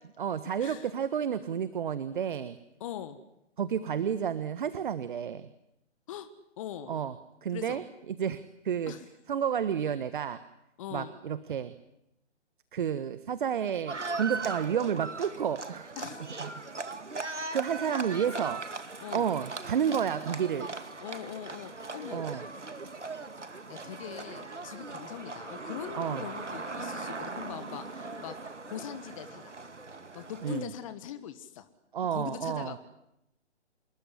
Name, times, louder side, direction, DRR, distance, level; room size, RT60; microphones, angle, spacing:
voice 1, 0.2-2.6 3.6-5.5 6.9-7.1 7.4-8.9 9.3-10.4 10.9-11.7 12.7-15.9 16.4-16.5 17.2-18.6 19.1-20.7 22.1-22.4 25.9-26.3 30.4-30.7 31.9-32.7, right 8 dB, 45° right, 13 dB, 1.4 m, -31 dB
voice 2, 2.8-3.2 6.1-6.3 6.6-6.9 7.5-7.8 8.9-9.0 10.8-11.1 16.0-16.3 18.3-18.5 19.0-19.3 21.0-22.3 23.7-28.4 28.7-29.6 30.1-31.7 32.0-32.8, left 10 dB, 30° left, 11 dB, 1.5 m, -41 dB
Livestock farm animals working animals, 13.9-30.7, right 3 dB, 90° right, 2.4 m, -39 dB
27.0 x 22.0 x 9.8 m, 0.83 s
figure-of-eight pair, 145°, 34 cm